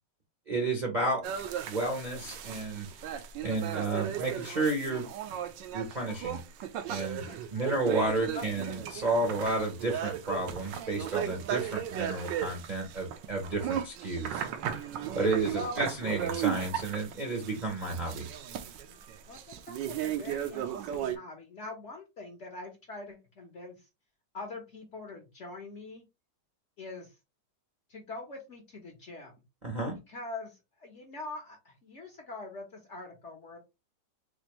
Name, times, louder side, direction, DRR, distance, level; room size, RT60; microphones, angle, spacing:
voice 1, 0.5-1.2 1.7-2.9 3.4-5.1 5.7-6.4 6.9-14.4 14.8-14.9 15.1-18.3 29.6-30.0, right 2 dB, 40° right, 0 dB, 0.6 m, -31 dB
sound 1, 1.2-21.2, right 10 dB, 85° right, 1.3 m, -36 dB
voice 2, 7.3-7.7 8.3-8.4 15.0-15.1 15.5-15.8 18.9-19.0 19.3-23.9 24.3-26.0 26.8-27.2 27.9-29.3 30.1-33.6, left 2 dB, 55° left, 2 dB, 0.9 m, -43 dB
4.2 x 2.5 x 3.0 m, 0.25 s
omnidirectional pair, 1.9 m